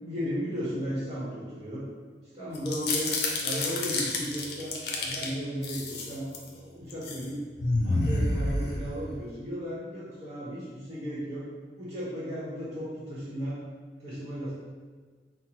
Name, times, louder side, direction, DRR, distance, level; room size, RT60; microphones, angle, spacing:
voice 1, 0.0-1.8 2.3-7.4 7.8-11.5 11.8-13.6 14.0-14.5, equal, 20° right, -9 dB, 1.0 m, -35 dB
sound 1, 2.5-5.3 5.6-6.5 6.9-7.2 7.6-9.2, left 2 dB, 65° left, 0.6 m, -29 dB
5.7 x 2.0 x 3.0 m, 1.5 s
head